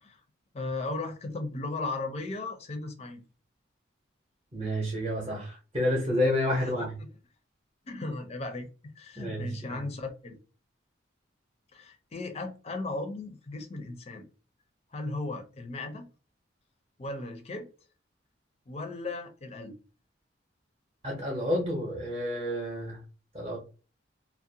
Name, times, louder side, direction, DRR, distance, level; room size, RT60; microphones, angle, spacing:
voice 1, 0.5-3.2 6.5-6.9 7.9-8.7 9.0-10.4 11.7-14.3 14.9-16.1 17.0-17.7 18.7-19.8, left 2 dB, 30° left, 0.5 m, -36 dB
voice 2, 4.5-6.9 9.2-9.8 21.0-23.0 23.3-23.6, left 1 dB, 25° right, 0.7 m, -30 dB
2.4 x 2.1 x 2.7 m
head